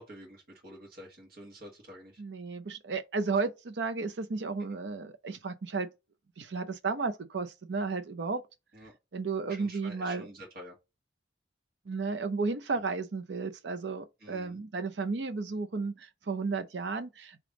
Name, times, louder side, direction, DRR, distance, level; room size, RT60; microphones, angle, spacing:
voice 1, 0.0-2.2 8.7-9.0 9.5-10.8 12.7-12.8 14.2-14.6, equal, 55° right, 1.6 m, -48 dB
voice 2, 2.2-5.9 6.4-8.4 9.1-10.3 11.9-17.4, right 4 dB, 75° right, 0.6 m, -33 dB
3.4 x 3.0 x 4.7 m
head